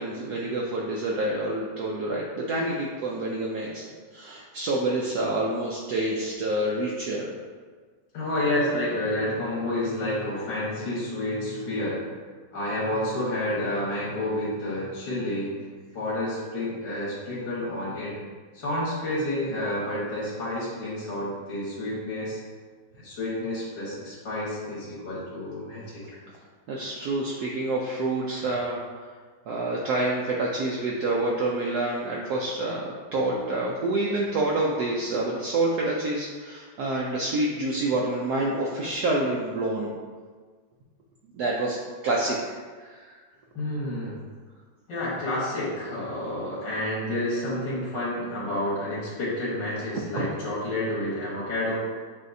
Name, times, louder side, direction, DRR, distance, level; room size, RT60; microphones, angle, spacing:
voice 1, 0.0-7.3 26.7-29.1 29.5-39.9 41.3-41.8 42.0-43.2 50.1-50.3, right 2 dB, 70° right, -3 dB, 1.0 m, -28 dB
voice 2, 8.1-12.1 12.5-15.5 15.9-18.2 18.5-22.4 22.9-26.2 43.6-44.3 44.9-51.8, left 1 dB, 90° left, -7 dB, 2.0 m, -29 dB
7.4 x 2.7 x 2.6 m, 1.5 s
omnidirectional pair, 1.9 m